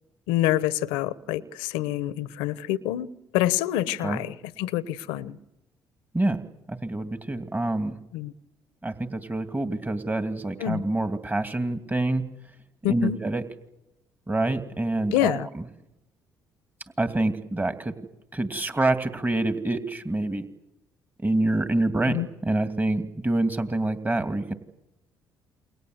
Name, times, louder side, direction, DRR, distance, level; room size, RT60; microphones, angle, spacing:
voice 1, 0.3-5.4 8.1-8.3 10.6-10.8 12.8-13.2 15.1-15.5 22.1-22.3, left 13 dB, 85° left, 1.0 m, -27 dB
voice 2, 6.7-8.0 8.8-12.3 12.9-13.4 14.3-15.6 17.0-17.9 18.3-20.4 21.2-22.2 22.4-24.5, right 2 dB, 20° right, 2.5 m, -26 dB
28.5 x 23.0 x 8.0 m
hypercardioid pair, 60°, 9 cm